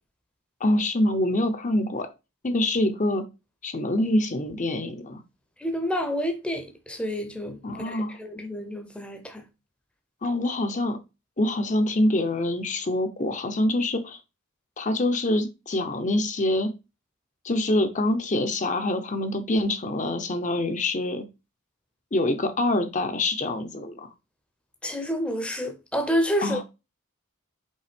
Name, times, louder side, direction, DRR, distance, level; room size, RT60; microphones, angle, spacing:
voice 1, 0.6-2.1 2.4-3.2 3.6-5.2 7.6-8.2 10.2-11.0 11.4-14.2 14.8-16.7 17.4-21.2 22.1-24.1 26.4-26.6, left 1 dB, 35° left, 0.8 m, -25 dB
voice 2, 5.6-7.6 7.8-9.4 24.8-26.6, equal, 5° left, 0.8 m, -29 dB
5.5 x 3.8 x 5.2 m
head